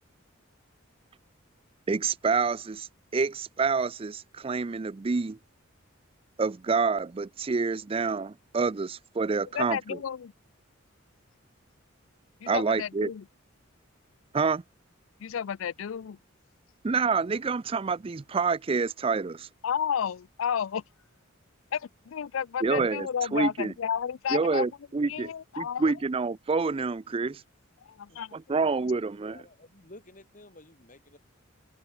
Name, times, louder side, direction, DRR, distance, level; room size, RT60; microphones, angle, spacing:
voice 1, 1.9-5.4 6.4-9.8 12.5-13.1 14.3-14.6 16.8-19.5 22.6-23.1 23.3-23.7 24.3-25.3 25.6-27.4 28.3-29.4, right 4 dB, 25° right, 0.4 m, -27 dB
voice 2, 9.5-10.3 12.4-13.3 15.2-16.2 19.6-20.8 21.7-24.7 25.1-25.9 27.8-28.6, left 8 dB, 70° left, 0.4 m, -32 dB
voice 3, 28.8-31.2, left 1 dB, 40° left, 5.8 m, -53 dB
head